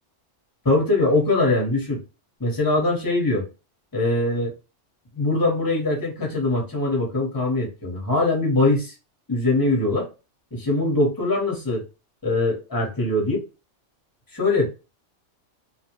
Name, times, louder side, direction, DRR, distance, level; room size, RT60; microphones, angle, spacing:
voice 1, 0.6-2.0 2.4-3.5 3.9-4.5 5.2-8.9 9.3-10.1 10.5-11.8 12.2-13.4 14.3-14.7, left 2 dB, 20° left, -1 dB, 0.9 m, -22 dB
2.4 x 2.1 x 2.8 m, 0.30 s
omnidirectional pair, 1.3 m